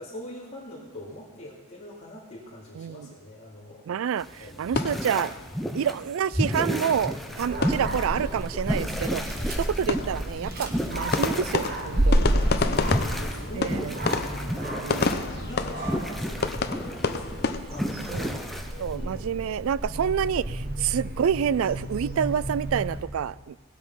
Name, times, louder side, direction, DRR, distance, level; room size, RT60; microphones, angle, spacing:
voice 1, 0.0-3.8 4.4-5.0 9.3-9.6 12.3-18.4 18.9-19.5 20.2-20.7, left 1 dB, 30° left, -10 dB, 2.5 m, -43 dB
voice 2, 2.8-3.1 3.9-5.3 5.7-9.2 9.6-12.3 13.6-13.9 14.7-15.0 18.1-18.4 18.8-23.6, right 8 dB, 65° right, 20 dB, 0.3 m, -28 dB
sound 1, 4.2-19.0, equal, ahead, 0.8 m, -32 dB
sound 2, 4.4-5.9 6.2-6.3 6.6-6.7 7.0-8.4 8.7-8.8 9.1-17.6, left 4 dB, 45° left, 0.7 m, -30 dB
Dog, 7.3-23.0, right 1 dB, 45° right, 1.3 m, -31 dB
19.0 x 8.3 x 5.6 m, 1.3 s
head